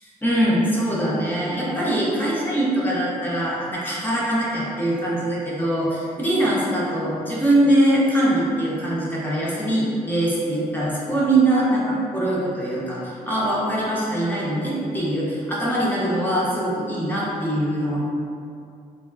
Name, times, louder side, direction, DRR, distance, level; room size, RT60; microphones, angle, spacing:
voice 1, 0.2-18.0, right 1 dB, 10° left, -7 dB, 0.8 m, -22 dB
3.3 x 2.2 x 2.2 m, 2.5 s
cardioid pair, 85°, 16 cm